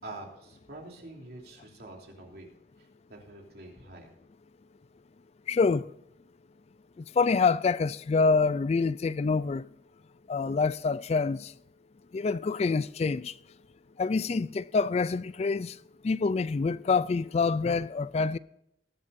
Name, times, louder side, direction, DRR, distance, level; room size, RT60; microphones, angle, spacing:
voice 1, 0.0-2.5 2.8-4.1, right 2 dB, 60° right, 3.3 m, -46 dB
voice 2, 5.5-5.9 7.2-9.7 10.3-11.5 12.1-13.3 14.0-15.7 16.0-18.4, left 4 dB, 35° left, 0.3 m, -26 dB
20.0 x 11.0 x 2.6 m
head